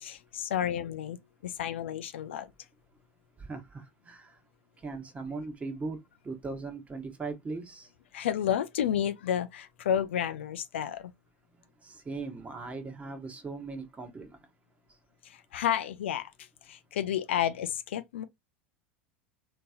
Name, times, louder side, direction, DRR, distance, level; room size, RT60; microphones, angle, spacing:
voice 1, 0.0-1.2 1.4-2.5 8.1-11.1 15.2-18.2, left 10 dB, 75° left, 0.5 m, -31 dB
voice 2, 3.4-4.4 4.8-6.0 6.2-7.9 11.8-14.4, right 3 dB, 20° right, 1.2 m, -39 dB
3.8 x 2.8 x 2.3 m
hypercardioid pair, 85°, 6 cm